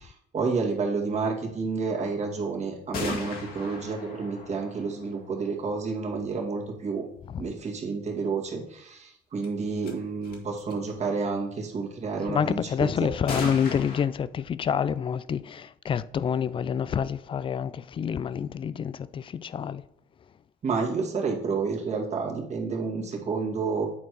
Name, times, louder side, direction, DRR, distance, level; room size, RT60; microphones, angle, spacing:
voice 1, 0.0-7.1 7.4-12.9 20.6-23.9, right 4 dB, 40° right, 2.1 m, -30 dB
sound 1, 2.9-5.8 9.4-9.5 9.8-9.9 10.2-10.7 13.3-14.0, left 3 dB, 60° left, 1.9 m, -36 dB
voice 2, 12.3-19.8, left 7 dB, 30° left, 0.3 m, -28 dB
8.6 x 4.5 x 4.6 m
cardioid pair, 110°, 17 cm